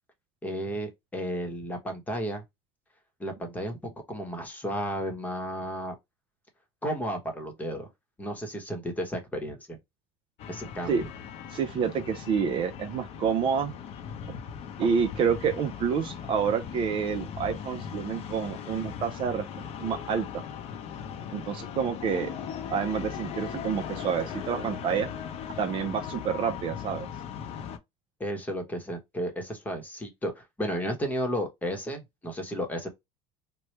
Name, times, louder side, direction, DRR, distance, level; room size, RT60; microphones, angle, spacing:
voice 1, 0.4-2.4 3.2-5.9 6.8-7.9 8.2-9.8 10.5-11.0 28.2-32.9, equal, 10° left, 1.0 m, -33 dB
sound 1, 10.4-27.8, left 8 dB, 50° left, 0.6 m, -38 dB
voice 2, 11.5-13.7 14.8-20.4 21.3-22.3 22.7-25.1 25.6-27.1, right 7 dB, 40° right, 0.5 m, -28 dB
3.1 x 2.2 x 3.1 m
supercardioid pair, 125°, 14 cm